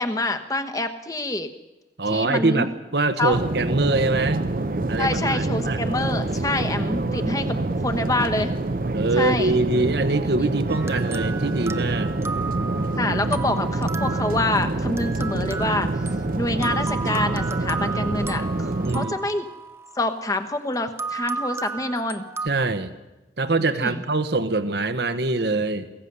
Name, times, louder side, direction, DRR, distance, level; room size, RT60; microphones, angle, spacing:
voice 1, 0.0-1.5 2.1-2.7 3.2-3.4 5.0-8.5 9.2-9.6 13.0-15.9 16.4-19.5 19.9-22.2 23.8-24.0, left 2 dB, 20° left, 8 dB, 1.1 m, -26 dB
voice 2, 2.0-4.4 4.9-5.8 8.9-12.2 18.8-19.1 22.4-22.9 23.4-25.9, right 2 dB, 65° right, 11 dB, 1.1 m, -24 dB
sound 1, 3.3-19.1, right 2 dB, 50° right, 0.7 m, -26 dB
sound 2, 10.7-20.4 21.0-22.5, right 4 dB, 15° right, 0.7 m, -34 dB
23.0 x 16.5 x 6.8 m, 1.1 s
head